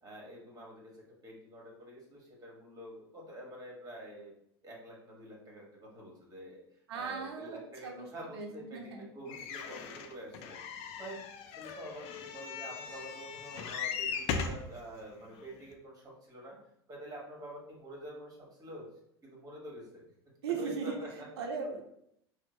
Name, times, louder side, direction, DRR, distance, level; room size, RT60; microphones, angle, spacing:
voice 1, 0.0-4.3 4.6-6.6 6.9-11.2 11.5-16.6 16.9-18.8 19.2-20.0 20.6-21.3, right 1 dB, 25° right, -2 dB, 1.4 m, -47 dB
voice 2, 6.9-8.1 8.3-9.1 20.4-21.0 21.4-21.8, right 5 dB, 70° right, 3 dB, 0.5 m, -38 dB
sound 1, 9.3-14.7 15.4-15.5 15.7-15.8, left 6 dB, 50° left, 0.4 m, -38 dB
4.2 x 2.1 x 3.0 m, 0.74 s
hypercardioid pair, 80°, 14 cm